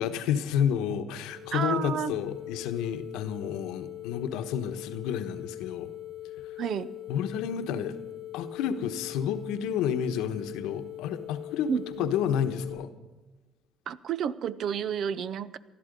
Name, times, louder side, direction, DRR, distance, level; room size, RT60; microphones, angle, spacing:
voice 1, 0.0-5.9 7.1-8.0 8.3-11.7 12.0-12.9, left 8 dB, 85° left, 9 dB, 1.1 m, -30 dB
sound 1, 1.3-12.7, left 14 dB, 25° right, 5.5 m, -42 dB
voice 2, 1.5-2.2 6.6-6.9 11.7-12.1 13.9-15.6, right 8 dB, 60° right, 17 dB, 0.6 m, -31 dB
19.5 x 13.0 x 5.3 m, 1.1 s
cardioid pair, 95°, 0 cm